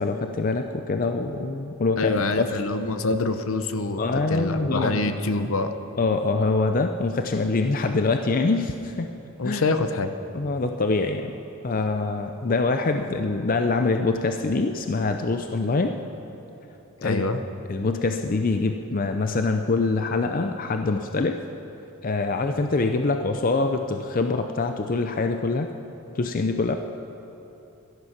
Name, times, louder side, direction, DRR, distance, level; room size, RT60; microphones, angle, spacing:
voice 1, 0.0-2.5 4.0-5.1 6.0-9.1 9.4-9.6 10.3-11.4 11.6-15.9 17.0-17.3 17.7-21.4 22.0-25.7 26.1-26.8, left 3 dB, 40° left, 6 dB, 0.5 m, -24 dB
voice 2, 2.0-4.0 4.3-5.7 9.4-10.1 17.0-17.4, left 3 dB, 70° left, 8 dB, 0.9 m, -25 dB
16.5 x 12.5 x 5.9 m, 3.0 s
head